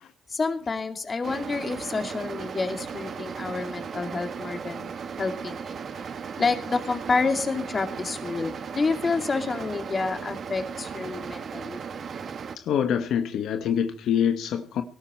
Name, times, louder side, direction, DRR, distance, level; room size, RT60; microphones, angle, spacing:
voice 1, 0.3-4.9 5.2-5.8 6.4-11.8, left 4 dB, 35° left, 7 dB, 2.6 m, -28 dB
sound 1, 1.2-12.6, right 6 dB, 55° right, 1.3 m, -36 dB
voice 2, 12.7-14.8, left 8 dB, 75° left, 8 dB, 1.2 m, -25 dB
18.5 x 13.0 x 4.4 m, 0.41 s
cardioid pair, 90°, 0 cm